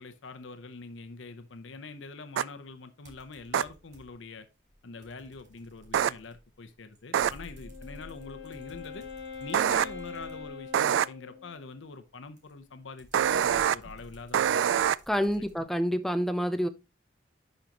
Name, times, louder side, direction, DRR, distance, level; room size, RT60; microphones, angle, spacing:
voice 1, 0.0-4.5 4.8-9.1 9.4-14.8 15.4-15.7, left 4 dB, 80° left, 0.7 m, -44 dB
sound 1, 2.4-2.5 3.5-3.6 5.9-6.1 7.1-7.3 9.5-9.8 10.7-11.1 13.1-13.8 14.3-15.0, right 9 dB, 75° right, 0.3 m, -24 dB
sound 2, 3.0-4.3 4.7-10.9 12.4-15.6, equal, 40° right, 2.0 m, -53 dB
Wind instrument woodwind instrument, 7.4-11.7, left 5 dB, 60° left, 2.8 m, -43 dB
voice 2, 15.1-16.7, equal, ahead, 0.5 m, -28 dB
11.0 x 5.2 x 2.9 m
head